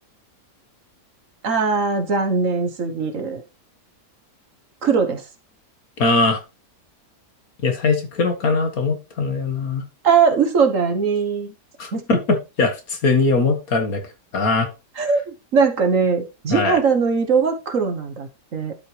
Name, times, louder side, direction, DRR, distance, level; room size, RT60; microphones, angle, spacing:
voice 1, 1.4-3.4 4.8-5.2 10.0-11.5 11.9-12.0 15.0-18.7, right 5 dB, 50° right, 5 dB, 1.5 m, -20 dB
voice 2, 6.0-6.4 7.6-9.8 11.8-14.0 14.3-14.7 16.5-16.8, left 3 dB, 60° left, 7 dB, 2.0 m, -21 dB
12.0 x 5.8 x 3.3 m, 0.28 s
omnidirectional pair, 1.8 m